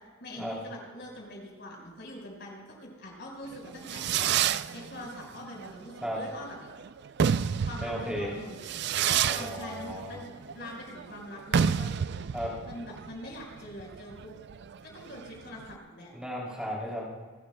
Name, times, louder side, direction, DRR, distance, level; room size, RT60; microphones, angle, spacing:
voice 1, 0.2-4.4 4.7-6.6 7.6-8.7 9.3-10.3 10.5-11.9 12.6-14.3 14.8-16.1, left 1 dB, 55° left, -1 dB, 4.8 m, -43 dB
Fireworks, 3.5-15.7, right 7 dB, 55° right, 0.4 m, -30 dB
voice 2, 7.8-8.3 9.2-10.2 12.3-12.5 16.1-17.1, equal, 5° right, -5 dB, 2.9 m, -35 dB
28.5 x 13.0 x 2.2 m, 1.5 s
head